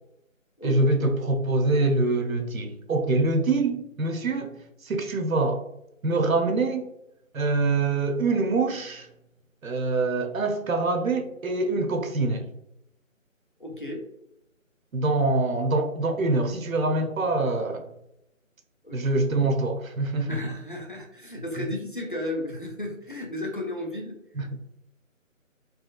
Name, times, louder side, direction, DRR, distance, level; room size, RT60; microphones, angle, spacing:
voice 1, 0.6-4.6 4.8-5.6 6.0-6.9 7.3-9.1 9.6-12.5 14.9-17.9 18.9-20.4 21.6-21.7 24.3-24.5, right 3 dB, 80° right, 0.8 m, -25 dB
voice 2, 13.6-14.0 18.8-19.2 20.3-24.2, left 1 dB, 40° left, 0.4 m, -34 dB
4.1 x 2.3 x 2.3 m
figure-of-eight pair, 170°, 41 cm